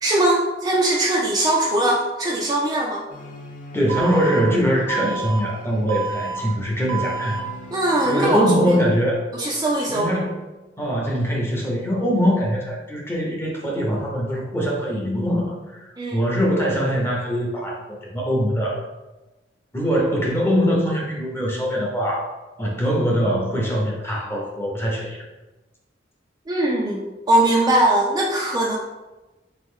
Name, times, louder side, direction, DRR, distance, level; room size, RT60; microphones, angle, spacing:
voice 1, 0.0-3.0 7.7-8.8 9.3-10.1 16.0-16.2 26.5-28.8, right 1 dB, 20° right, -2 dB, 0.4 m, -21 dB
sound 1, 3.1-8.5, left 1 dB, 45° left, 0.5 m, -41 dB
voice 2, 3.7-7.4 8.0-9.2 9.9-10.4 10.8-17.8 18.1-18.8 19.7-22.3 22.6-25.3, equal, 15° left, -2 dB, 0.8 m, -22 dB
Alarm, 3.9-4.4 4.9-5.4 5.9-6.4 6.9-7.4 7.9-8.4, right 6 dB, 90° right, 0.5 m, -28 dB
3.5 x 3.0 x 3.6 m, 1.1 s
head